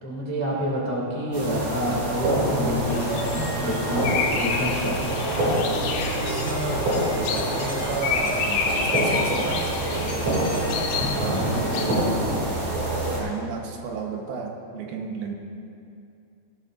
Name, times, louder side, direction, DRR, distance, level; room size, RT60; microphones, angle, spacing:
voice 1, 0.0-4.1 4.4-5.2 11.0-11.5, equal, 15° left, -5 dB, 0.5 m, -28 dB
sound 1, 1.3-13.2, right 1 dB, 45° right, 3.2 m, -26 dB
sound 2, 2.9-12.0, left 5 dB, 85° left, 2.8 m, -30 dB
Doorbell, 6.0-11.4, left 1 dB, 55° left, 3.6 m, -35 dB
voice 2, 6.2-9.7 10.0-10.2 11.1-12.7 13.1-15.3, right 5 dB, 75° right, 1 dB, 2.8 m, -33 dB
18.0 x 12.5 x 2.5 m, 2.5 s
omnidirectional pair, 4.5 m